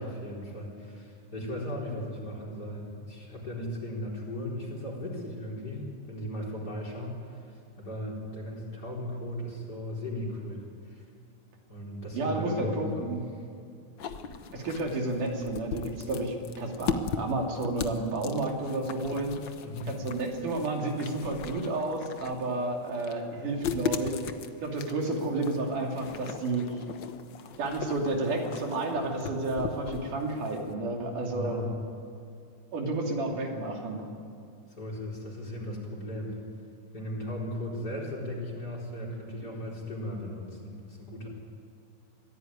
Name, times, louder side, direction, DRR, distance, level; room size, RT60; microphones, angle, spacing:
voice 1, 0.0-11.1 11.7-13.4 19.6-20.0 31.2-31.7 34.7-36.4 36.9-41.3, left 1 dB, 30° left, -1 dB, 4.8 m, -37 dB
voice 2, 12.1-13.2 14.5-19.4 19.9-24.1 24.6-26.6 27.6-31.6 32.7-34.1, right 2 dB, 90° right, 1 dB, 4.3 m, -31 dB
sound 1, 14.0-30.7, left 6 dB, 85° left, 1.0 m, -38 dB
23.5 x 16.0 x 9.5 m, 2.4 s
omnidirectional pair, 3.5 m